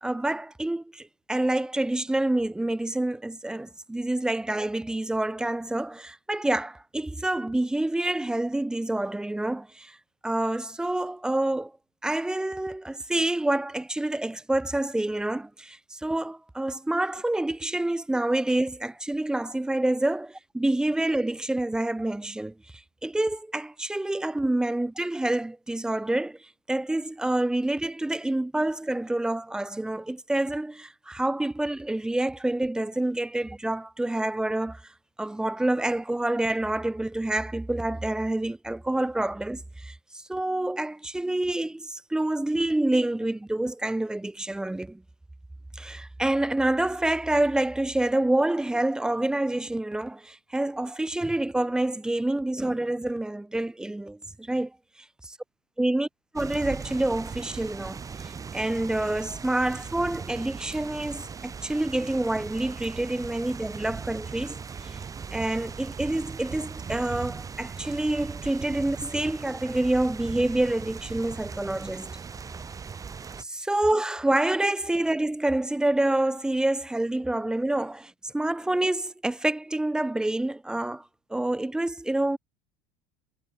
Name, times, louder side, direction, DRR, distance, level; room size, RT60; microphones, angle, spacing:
voice 1, 0.0-10.0 10.2-11.7 12.0-22.5 23.0-26.4 26.7-34.8 35.2-45.0 45.7-54.7 55.8-56.1 56.3-65.0 65.3-72.1 73.4-81.0 81.3-82.4, right 1 dB, 5° right, 0.4 m, -27 dB
sound 1, 56.4-73.4, right 6 dB, 25° right, 5.6 m, -39 dB
supercardioid pair, 115°, 14 cm